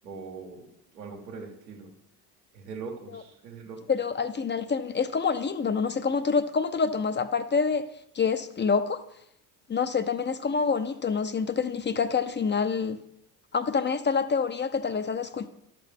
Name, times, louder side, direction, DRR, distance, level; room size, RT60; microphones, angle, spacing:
voice 1, 0.0-1.9 2.5-3.8, right 5 dB, 90° right, 1 dB, 1.7 m, -41 dB
voice 2, 3.9-7.8 8.1-9.0 9.7-13.0 13.5-15.5, left 5 dB, 25° left, 11 dB, 0.5 m, -27 dB
12.0 x 5.9 x 3.6 m, 0.75 s
hypercardioid pair, 65°, 48 cm